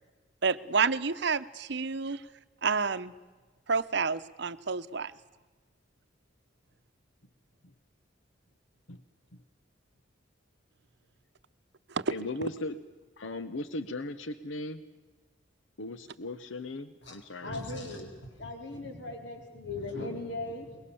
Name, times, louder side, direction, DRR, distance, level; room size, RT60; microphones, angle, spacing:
voice 1, 0.4-2.2 2.6-3.1 3.7-5.1 11.9-12.1, right 5 dB, 60° right, 14 dB, 0.8 m, -29 dB
voice 2, 12.1-12.8 13.2-14.8 15.8-17.6, left 2 dB, 75° left, 12 dB, 1.0 m, -38 dB
voice 3, 17.4-20.8, left 2 dB, 60° left, 2 dB, 4.6 m, -38 dB
23.5 x 22.0 x 7.1 m, 1.3 s
head